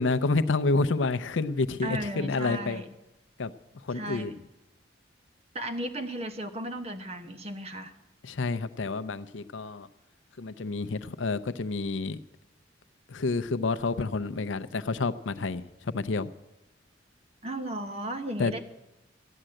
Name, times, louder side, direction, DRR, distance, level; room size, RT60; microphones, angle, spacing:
voice 1, 0.0-2.8 3.4-3.5 3.8-4.3 8.2-9.9 10.4-12.2 13.1-16.3 18.4-18.5, left 3 dB, 80° left, 12 dB, 0.6 m, -29 dB
voice 2, 1.8-2.9 3.9-4.3 5.5-7.9 17.4-18.6, right 1 dB, 30° right, 8 dB, 1.0 m, -35 dB
14.5 x 10.0 x 7.7 m, 0.97 s
head